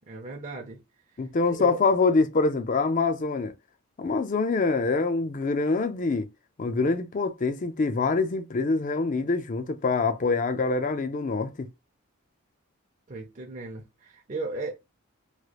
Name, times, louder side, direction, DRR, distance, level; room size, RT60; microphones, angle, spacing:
voice 1, 0.1-0.8 1.2-1.8 13.1-14.8, right 3 dB, 35° right, 0.6 m, -37 dB
voice 2, 1.2-3.5 4.0-6.3 6.6-11.7, left 3 dB, 35° left, 0.4 m, -25 dB
3.1 x 3.1 x 2.3 m
head